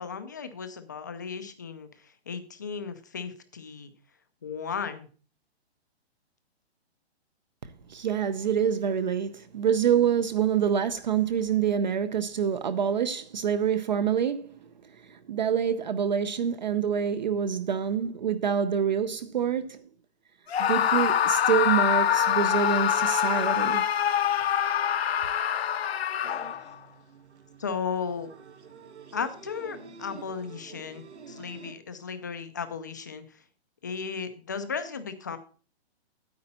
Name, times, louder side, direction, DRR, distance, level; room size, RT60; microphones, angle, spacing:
voice 1, 0.0-3.9 4.4-5.1 27.6-28.3 29.1-33.4 33.8-35.4, left 6 dB, 15° left, 0.5 m, -35 dB
voice 2, 7.9-14.6 14.9-19.8 20.6-23.9 24.5-24.6, right 8 dB, 45° right, 0.7 m, -26 dB
Screaming, 20.5-26.7, left 9 dB, 65° left, 0.9 m, -25 dB
sound 1, 26.2-31.7, right 5 dB, 85° right, 2.2 m, -48 dB
9.7 x 8.6 x 4.2 m
hypercardioid pair, 175°, 33 cm